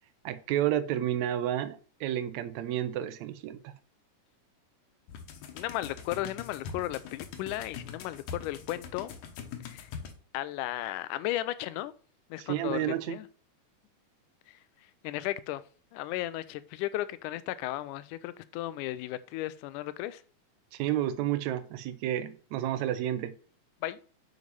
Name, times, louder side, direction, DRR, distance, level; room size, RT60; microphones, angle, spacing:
voice 1, 0.2-3.7 12.4-13.2 20.7-23.4, right 12 dB, 75° right, 1.9 m, -31 dB
sound 1, 5.1-10.1, left 6 dB, 70° left, 2.3 m, -43 dB
voice 2, 5.5-9.2 9.6-9.9 10.3-11.9 12.3-13.3 14.5-14.6 15.0-15.6 15.9-20.2 23.8-24.0, left 15 dB, 85° left, 2.1 m, -35 dB
7.9 x 5.3 x 5.4 m
omnidirectional pair, 3.6 m